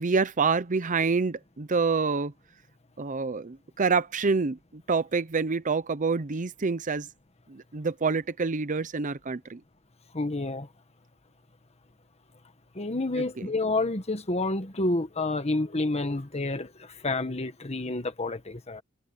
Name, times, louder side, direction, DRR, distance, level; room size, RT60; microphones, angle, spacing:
voice 1, 0.0-2.3 3.0-7.1 7.5-9.6 13.2-13.5, right 4 dB, 40° right, 0.7 m, -27 dB
voice 2, 10.1-10.7 12.7-18.8, left 2 dB, 30° left, 1.5 m, -29 dB
head